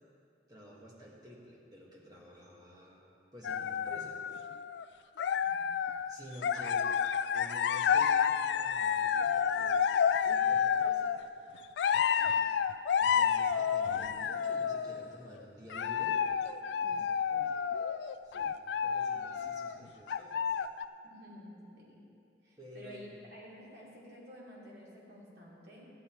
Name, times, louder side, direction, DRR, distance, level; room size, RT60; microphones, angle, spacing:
voice 1, 0.5-3.0 3.3-4.2 6.1-6.9 7.3-11.1 12.1-12.4 13.0-17.7 18.2-20.5 22.6-23.2, equal, 20° right, -3 dB, 1.7 m, -51 dB
sound 1, 3.4-4.8 5.2-6.2 6.4-11.2 11.8-15.1 15.7-19.8 20.1-20.9, left 7 dB, 75° left, 0.3 m, -30 dB
voice 2, 5.4-6.0 21.0-22.0 22.4-25.9, equal, 70° right, -5 dB, 2.8 m, -51 dB
14.0 x 9.5 x 4.6 m, 2.6 s
head